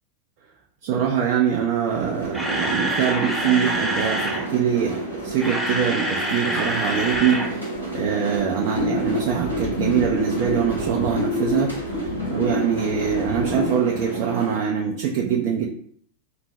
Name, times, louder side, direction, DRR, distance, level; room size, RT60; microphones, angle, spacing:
voice 1, 0.8-11.7 12.3-15.7, right 8 dB, 45° right, -2 dB, 0.5 m, -23 dB
sound 1, 1.9-14.6, right 2 dB, 90° left, 1.1 m, -31 dB
Camera, 2.0-4.4 5.2-7.5 7.8-7.9 8.4-8.5, right 1 dB, 5° left, 0.7 m, -26 dB
sound 2, 8.7-13.8, left 3 dB, 30° left, 1.5 m, -28 dB
3.2 x 2.5 x 3.2 m, 0.62 s
figure-of-eight pair, 90°, 0 cm